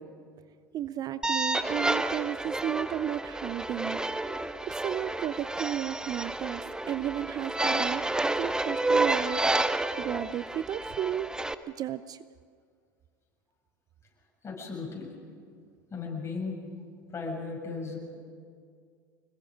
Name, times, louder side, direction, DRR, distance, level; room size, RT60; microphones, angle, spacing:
voice 1, 0.7-4.0 4.6-9.4 10.0-11.4 11.7-12.2, right 11 dB, 40° right, 15 dB, 0.5 m, -33 dB
sound 1, 1.2-11.5, right 2 dB, 5° right, 0.8 m, -30 dB
voice 2, 14.4-15.1 15.9-16.6 17.1-18.0, left 4 dB, 25° left, -1 dB, 7.1 m, -36 dB
25.5 x 21.5 x 5.2 m, 2.1 s
hypercardioid pair, 85°, 10 cm